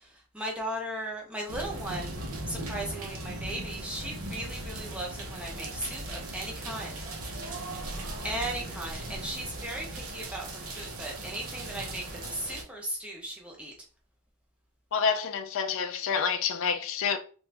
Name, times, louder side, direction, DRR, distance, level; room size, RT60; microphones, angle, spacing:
voice 1, 0.3-7.0 8.2-13.7, right 1 dB, 5° right, 0.7 m, -37 dB
sound 1, 1.5-12.6, right 1 dB, 80° right, 0.8 m, -38 dB
voice 2, 14.9-17.2, left 6 dB, 65° left, 0.3 m, -28 dB
3.0 x 2.5 x 3.3 m
head